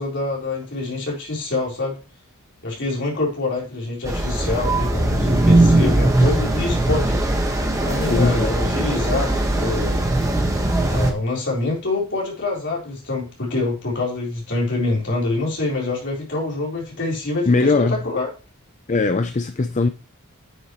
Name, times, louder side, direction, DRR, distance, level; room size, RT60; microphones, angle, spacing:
voice 1, 0.0-2.0 2.6-7.2 7.8-10.1 10.9-18.3, left 2 dB, 55° left, 4.0 m, -25 dB
sound 1, 4.0-11.1, right 1 dB, 15° right, 1.4 m, -19 dB
voice 2, 8.1-8.5 17.5-18.0 18.9-19.9, left 3 dB, 35° left, 0.5 m, -19 dB
9.4 x 6.7 x 3.1 m
head